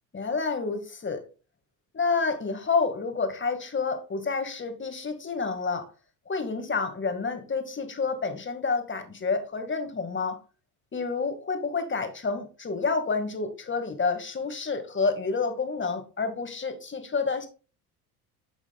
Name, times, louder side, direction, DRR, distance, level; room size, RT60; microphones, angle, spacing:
voice 1, 0.1-1.2 1.9-5.9 6.3-10.4 10.9-17.5, left 4 dB, 30° left, 7 dB, 1.9 m, -29 dB
9.4 x 6.1 x 2.3 m, 0.34 s
hypercardioid pair, 60°, 42 cm